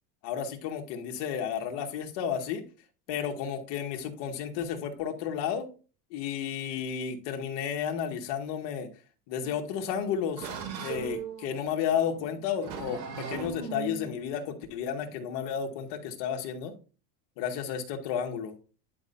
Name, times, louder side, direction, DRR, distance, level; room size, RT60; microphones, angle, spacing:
voice 1, 0.2-2.6 3.1-5.7 6.1-8.9 9.3-10.5 10.8-16.7 17.4-18.6, left 8 dB, 55° left, 3 dB, 2.1 m, -32 dB
sound 1, 9.4-16.0, right 6 dB, 90° right, 2.9 m, -40 dB
11.0 x 5.6 x 2.7 m, 0.35 s
supercardioid pair, 125°, 49 cm